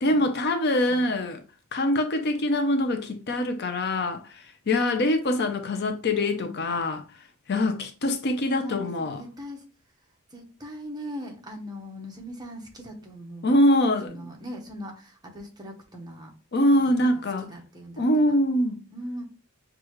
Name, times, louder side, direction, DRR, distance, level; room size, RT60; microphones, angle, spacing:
voice 1, 0.0-1.4 1.7-7.0 7.5-9.2 13.4-14.3 16.5-17.4 18.0-18.8, left 1 dB, 50° left, 0.5 m, -24 dB
voice 2, 6.1-6.7 8.5-9.7 10.3-13.6 14.0-16.3 16.7-16.8 17.1-18.4 18.9-19.2, equal, 20° right, 1.0 m, -40 dB
6.3 x 2.4 x 3.0 m
head